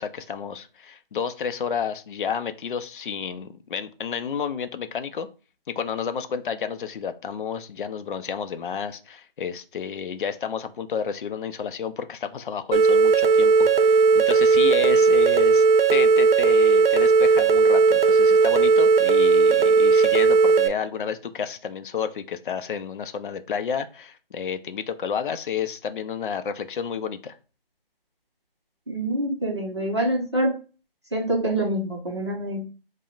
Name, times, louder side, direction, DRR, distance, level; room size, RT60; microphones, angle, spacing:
voice 1, 0.0-5.3 5.7-15.6 15.9-27.3, left 7 dB, 60° left, 9 dB, 0.4 m, -31 dB
sound 1, 12.7-20.7, right 4 dB, 75° right, 0.6 m, -17 dB
voice 2, 28.9-30.5 31.1-32.6, right 1 dB, 30° right, -3 dB, 0.6 m, -25 dB
5.1 x 2.0 x 2.4 m, 0.35 s
figure-of-eight pair, 170°, 29 cm